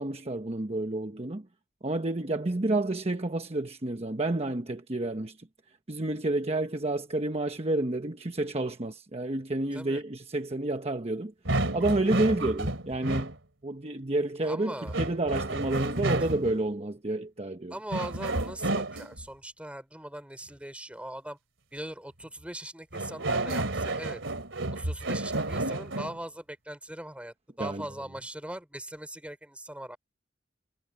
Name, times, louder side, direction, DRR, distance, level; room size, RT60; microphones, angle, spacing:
voice 1, 0.0-1.5 1.8-5.5 5.9-11.3 11.7-13.3 13.6-17.7 27.6-27.8, right 2 dB, 35° right, 1.1 m, -30 dB
sound 1, 11.5-13.3 14.9-16.6 17.9-19.2 22.9-26.2, right 2 dB, 90° right, 2.8 m, -31 dB
voice 2, 14.4-15.0 17.7-21.4 21.7-24.2 24.7-30.0, right 1 dB, 5° right, 3.6 m, -40 dB
head